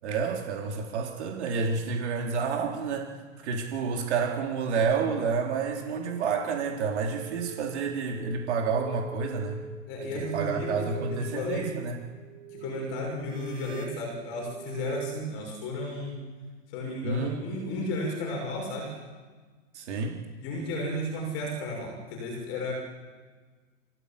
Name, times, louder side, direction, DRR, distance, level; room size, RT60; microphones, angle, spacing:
voice 1, 0.0-3.1 3.4-9.6 10.1-12.0 17.0-17.4 19.7-20.2, right 5 dB, 60° right, 1 dB, 3.9 m, -29 dB
sound 1, 6.0-15.2, right 7 dB, 85° right, 6.9 m, -42 dB
voice 2, 9.9-11.7 12.5-16.2 16.7-18.9 20.4-22.7, left 1 dB, 35° left, 1 dB, 6.2 m, -33 dB
29.5 x 16.5 x 8.6 m, 1.4 s
supercardioid pair, 160°, 38 cm